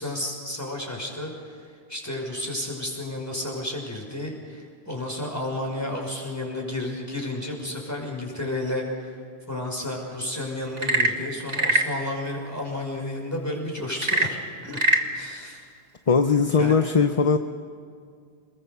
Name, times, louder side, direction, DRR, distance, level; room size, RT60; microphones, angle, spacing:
voice 1, 0.0-9.2 9.5-14.4 14.6-14.8 15.1-15.7 16.5-16.8, left 1 dB, 15° left, 0 dB, 5.7 m, -32 dB
Frog / Percussion / Wood, 10.7-12.0 14.0-15.1, right 2 dB, 40° right, 1.8 m, -23 dB
voice 2, 16.1-17.4, left 5 dB, 35° left, 8 dB, 0.7 m, -19 dB
28.0 x 21.5 x 6.8 m, 2.2 s
omnidirectional pair, 1.1 m